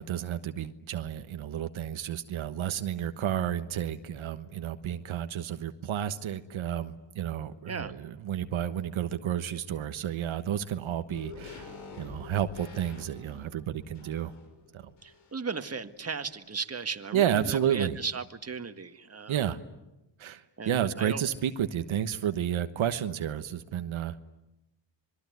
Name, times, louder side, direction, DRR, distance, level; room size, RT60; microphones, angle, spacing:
voice 1, 0.0-14.3 14.7-14.9 17.1-18.0 19.3-19.6 20.2-24.2, right 10 dB, 85° right, 9 dB, 1.3 m, -31 dB
sound 1, 11.1-15.6 15.9-16.0, left 4 dB, 85° left, 6.4 m, -47 dB
voice 2, 15.0-19.5 20.6-21.2, right 5 dB, 30° right, 8 dB, 1.7 m, -36 dB
26.5 x 21.5 x 9.5 m, 0.95 s
cardioid pair, 80°, 47 cm